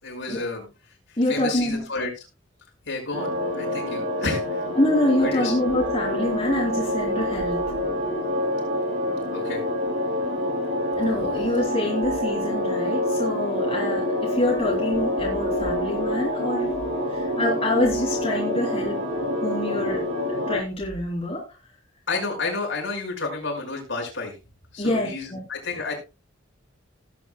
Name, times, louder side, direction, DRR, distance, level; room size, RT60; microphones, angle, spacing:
voice 1, 0.0-0.7 1.1-2.1 2.9-4.6 5.2-5.5 9.3-9.6 22.1-24.4 24.7-26.0, left 3 dB, 65° left, 0 dB, 5.4 m, -31 dB
voice 2, 1.2-1.8 4.7-7.6 11.0-16.7 17.1-19.0 19.4-20.0 20.5-21.4 24.8-25.4, left 1 dB, 30° left, -3 dB, 3.1 m, -26 dB
sound 1, 3.1-20.6, left 1 dB, 80° right, 6.2 m, -26 dB
18.5 x 8.6 x 2.2 m, 0.28 s
head